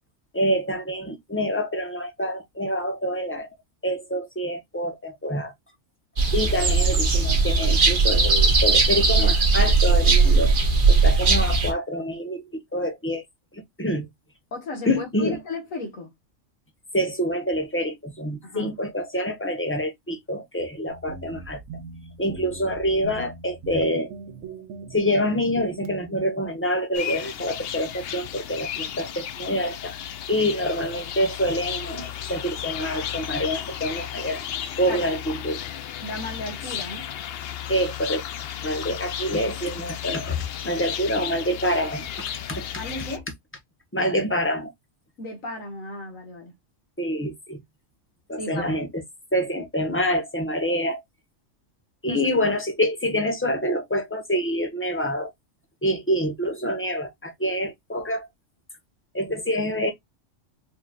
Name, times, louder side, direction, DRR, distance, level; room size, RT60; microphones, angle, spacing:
voice 1, 0.3-3.5 3.8-5.5 6.3-10.5 10.9-13.2 13.5-14.1 14.8-15.4 16.9-21.6 22.2-24.1 24.9-29.9 30.3-34.4 34.8-35.6 37.7-38.2 38.6-42.1 42.5-42.8 43.9-44.7 47.0-47.6 48.3-49.0 49.3-51.0 52.0-55.3 55.8-58.3 59.1-59.9, equal, 10° left, 1.0 m, -26 dB
sound 1, 6.2-11.7, right 4 dB, 40° right, 1.2 m, -18 dB
voice 2, 14.5-16.1 18.4-18.7 34.9-35.1 36.0-37.1 42.8-43.2 45.2-46.5 48.4-48.8 52.1-52.2, left 2 dB, 85° left, 2.0 m, -35 dB
sound 2, 20.9-25.9, right 5 dB, 85° right, 1.3 m, -40 dB
sound 3, 26.9-43.2, left 10 dB, 60° left, 0.7 m, -34 dB
4.9 x 3.0 x 2.4 m
omnidirectional pair, 1.3 m